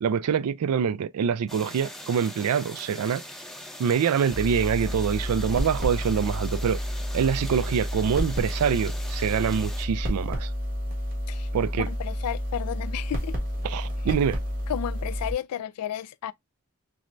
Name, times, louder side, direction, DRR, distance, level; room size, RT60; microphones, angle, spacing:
voice 1, 0.0-3.2 3.8-6.8 7.1-10.5 11.5-11.9 13.6-14.4, right 7 dB, 80° right, 0.3 m, -25 dB
sound 1, 1.5-9.8, equal, ahead, 0.5 m, -42 dB
sound 2, 4.3-15.3, equal, 40° right, 1.5 m, -30 dB
voice 2, 11.8-13.3 14.1-14.2 14.7-16.3, left 10 dB, 85° left, 0.3 m, -32 dB
6.0 x 2.2 x 2.5 m
head